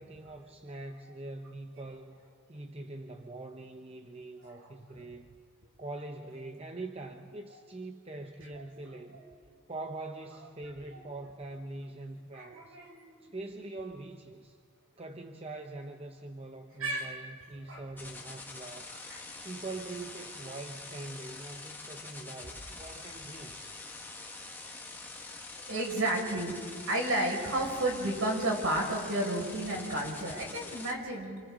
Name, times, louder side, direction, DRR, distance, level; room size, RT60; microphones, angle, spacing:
voice 1, 0.0-2.2 2.5-5.3 5.8-9.2 9.7-12.8 13.2-14.6 15.0-18.9 19.4-23.7, right 2 dB, 25° right, 4 dB, 0.8 m, -43 dB
voice 2, 4.6-5.1 8.5-9.2 10.9-11.0 12.3-13.2 16.8-17.2 17.7-17.8 19.1-19.2 23.4-23.5 25.7-31.4, right 1 dB, 65° right, -1 dB, 5.5 m, -32 dB
sound 1, 18.0-30.9, left 3 dB, 10° left, 1.5 m, -45 dB
28.5 x 27.5 x 3.8 m, 2.2 s
head